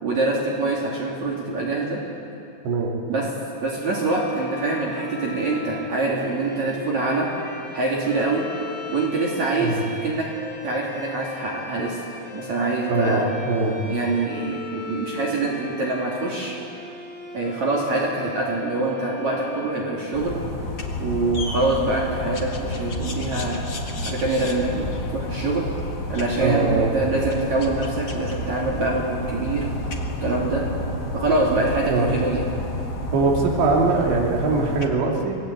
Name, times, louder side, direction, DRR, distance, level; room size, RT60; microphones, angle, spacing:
voice 1, 0.0-2.0 3.1-3.3 3.6-7.3 7.7-8.5 8.9-9.8 10.0-10.3 10.6-12.0 12.3-13.3 13.9-16.5 17.3-20.4 21.0-23.7 24.1-24.9 25.1-25.7 26.1-29.7 30.2-30.7 31.1-32.5, right 2 dB, 40° right, -3 dB, 3.7 m, -24 dB
voice 2, 2.6-3.0 9.6-9.8 12.9-13.8 26.4-26.9 31.9-32.1 33.1-35.4, right 3 dB, 70° right, -1 dB, 4.8 m, -22 dB
sound 1, 3.7-20.6, left 2 dB, 5° left, 2.3 m, -38 dB
sound 2, 20.1-34.9, left 1 dB, 65° left, 1.0 m, -30 dB
28.5 x 20.5 x 8.5 m, 2.7 s
omnidirectional pair, 5.3 m